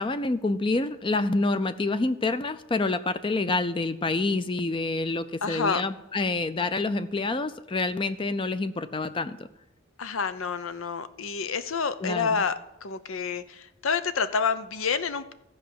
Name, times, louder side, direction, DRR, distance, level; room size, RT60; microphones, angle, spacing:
voice 1, 0.0-9.5 12.0-12.4, left 3 dB, 25° left, 12 dB, 0.4 m, -27 dB
voice 2, 5.4-5.8 10.0-15.3, left 5 dB, 90° left, 13 dB, 0.7 m, -28 dB
14.0 x 5.1 x 7.6 m, 0.91 s
head